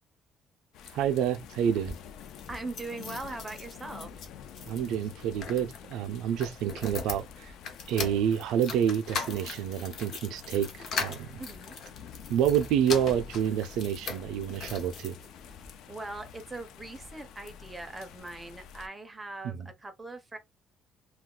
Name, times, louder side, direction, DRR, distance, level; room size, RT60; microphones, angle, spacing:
sound 1, 0.7-18.9, left 8 dB, 70° left, 0.3 m, -49 dB
voice 1, 0.9-2.0 4.6-7.5 7.9-11.4 12.3-15.1 19.4-19.7, right 9 dB, 85° right, 0.4 m, -28 dB
sound 2, 1.7-15.7 16.3-17.2 17.5-17.6 17.8-17.9, left 5 dB, 55° left, 0.7 m, -41 dB
voice 2, 2.5-4.2 11.4-11.8 15.9-20.4, right 2 dB, 15° right, 0.4 m, -41 dB
2.3 x 2.3 x 3.6 m
cardioid pair, 160°, 0 cm